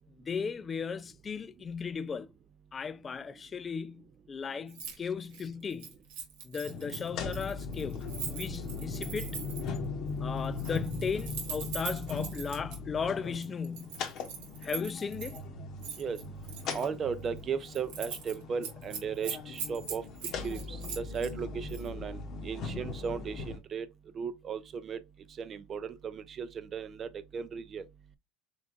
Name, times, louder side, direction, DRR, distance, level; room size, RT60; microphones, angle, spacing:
voice 1, 0.1-2.3 2.7-5.9 6.4-9.3 10.2-14.0 14.6-15.4, left 6 dB, 25° left, 0.3 m, -36 dB
Keys jangling, 4.7-5.0 5.2-9.8 10.4-12.8 13.4-15.4 15.8-16.9 17.3-17.4 17.7-18.3 18.6-21.3 21.7-21.9, right 6 dB, 90° right, 1.5 m, -41 dB
sound 1, 6.6-23.6, left 4 dB, 55° left, 0.9 m, -39 dB
sound 2, 15.1-17.5 17.8-18.4 18.7-19.2 19.5-20.7, right 4 dB, 75° right, 0.8 m, -50 dB
voice 2, 16.7-23.9 24.2-25.0 25.4-27.8, right 6 dB, 35° right, 0.5 m, -36 dB
3.8 x 3.5 x 2.4 m
supercardioid pair, 110°, 0 cm